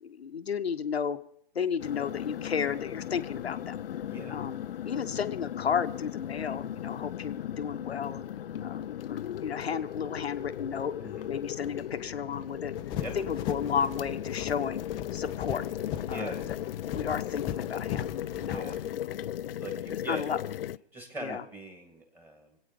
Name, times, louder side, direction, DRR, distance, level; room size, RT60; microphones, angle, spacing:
voice 1, 0.0-1.2 1.5-3.8 4.3-4.6 4.8-8.2 8.6-10.9 11.2-12.7 13.1-14.8 15.1-15.6 16.1-16.6 16.8-18.8 19.1-19.2 19.9-20.4 21.2-21.4, left 7 dB, 85° left, 9 dB, 1.1 m, -33 dB
sound 1, 1.8-20.8, left 11 dB, 65° left, 0.5 m, -37 dB
voice 2, 4.0-4.4 11.0-11.3 13.0-13.2 16.1-16.5 18.4-18.8 19.6-20.3 20.9-22.6, right 1 dB, 5° right, 4 dB, 2.2 m, -41 dB
sound 2, 12.7-18.9, left 11 dB, 15° left, 0.5 m, -39 dB
24.0 x 8.9 x 5.3 m, 0.69 s
hypercardioid pair, 140°, 31 cm